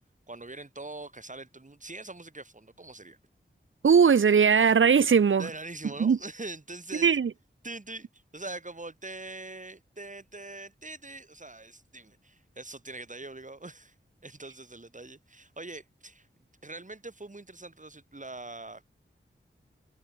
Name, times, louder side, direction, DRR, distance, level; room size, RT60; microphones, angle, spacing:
voice 1, 0.3-3.2 5.4-7.2 7.6-13.9 14.2-16.3 16.6-18.9, right 2 dB, 35° right, 3.0 m, -43 dB
voice 2, 3.8-5.5 6.0-6.2 7.0-7.3, right 6 dB, 70° right, 0.8 m, -20 dB
cardioid pair, 40°, 21 cm